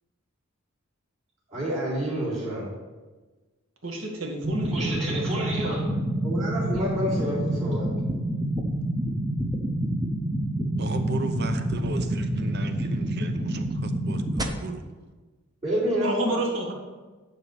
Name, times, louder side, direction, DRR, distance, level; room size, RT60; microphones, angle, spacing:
voice 1, 1.5-2.7 4.7-5.8 6.2-7.9 15.6-16.4, right 1 dB, 35° right, 3.1 m, -28 dB
voice 2, 3.8-5.9 16.0-16.7, right 1 dB, 70° right, 1.8 m, -31 dB
sound 1, 4.4-14.4, right 1 dB, 20° right, 0.7 m, -28 dB
voice 3, 10.8-14.8, right 2 dB, 55° right, 0.8 m, -34 dB
10.0 x 4.2 x 6.7 m
head